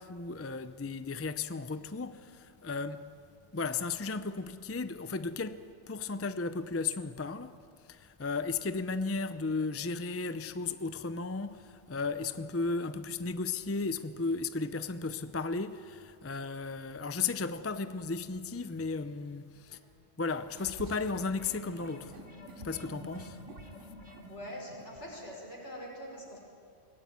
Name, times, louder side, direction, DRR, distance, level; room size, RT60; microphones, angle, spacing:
voice 1, 0.0-3.1 3.5-7.6 7.8-19.8 20.2-22.2 22.6-23.4, left 4 dB, 20° left, 0.4 m, -35 dB
sound 1, 20.3-25.2, equal, 90° right, 2.9 m, -48 dB
voice 2, 24.3-26.4, equal, 70° left, 5.9 m, -44 dB
22.5 x 17.5 x 9.5 m
omnidirectional pair, 1.2 m